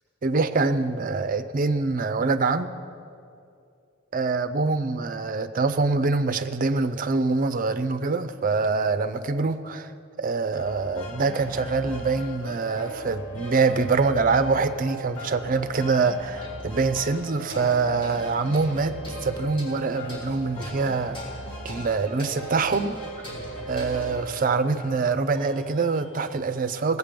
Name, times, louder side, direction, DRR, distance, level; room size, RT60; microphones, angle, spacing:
voice 1, 0.2-2.7 4.1-9.9 10.2-18.9 19.2-21.2 21.6-23.3 23.7-27.0, right 4 dB, 45° right, 10 dB, 0.5 m, -25 dB
sound 1, 10.5-26.4, right 1 dB, 70° left, 2.1 m, -39 dB
sound 2, 16.4-24.2, left 1 dB, 25° left, 3.4 m, -43 dB
18.0 x 8.2 x 5.1 m, 2.5 s
head